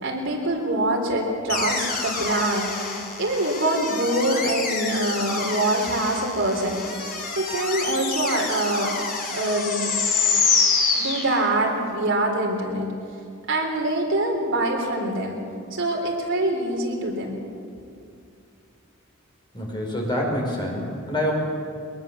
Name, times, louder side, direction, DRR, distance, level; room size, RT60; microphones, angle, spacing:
voice 1, 0.0-2.7 3.2-6.8 7.4-8.9 9.3-9.9 10.9-12.9 13.5-15.4 15.7-17.4, right 1 dB, 60° right, 1 dB, 3.8 m, -24 dB
sound 1, 1.5-11.8, left 4 dB, 45° left, 3.4 m, -27 dB
voice 2, 19.5-21.3, equal, 20° left, -1 dB, 5.0 m, -26 dB
22.0 x 21.5 x 7.3 m, 2.4 s
head